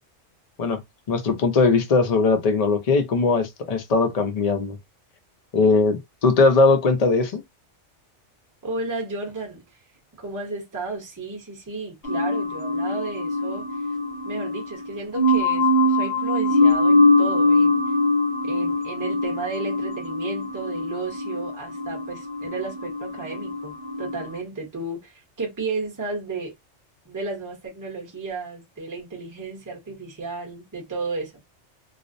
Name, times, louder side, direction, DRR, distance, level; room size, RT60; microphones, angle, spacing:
voice 1, 1.1-4.8 5.5-7.4, left 3 dB, 45° left, 0.5 m, -20 dB
voice 2, 8.6-9.6 10.2-13.6 14.2-17.8 18.4-26.5 27.0-31.3, right 3 dB, 20° right, 0.8 m, -33 dB
sound 1, 12.0-24.3, left 2 dB, 65° left, 0.9 m, -23 dB
2.4 x 2.0 x 2.5 m
omnidirectional pair, 1.2 m